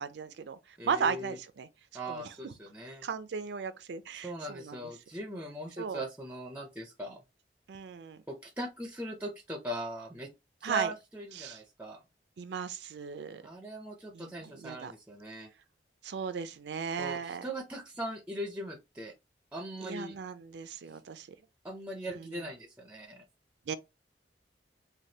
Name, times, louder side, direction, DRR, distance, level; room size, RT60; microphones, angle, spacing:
voice 1, 0.0-1.7 2.1-2.5 3.0-4.8 5.8-6.0 7.7-8.2 10.6-10.9 11.4-11.6 12.4-13.4 14.1-14.9 16.0-17.4 19.8-21.3 22.1-22.4 23.7-23.8, right 6 dB, 75° right, 0.4 m, -36 dB
voice 2, 0.8-1.4 1.9-3.0 4.2-7.2 8.3-10.3 10.6-12.0 13.4-15.5 17.0-19.1 19.5-20.1 21.6-23.2, right 1 dB, 10° right, 0.4 m, -40 dB
3.2 x 2.2 x 2.7 m
head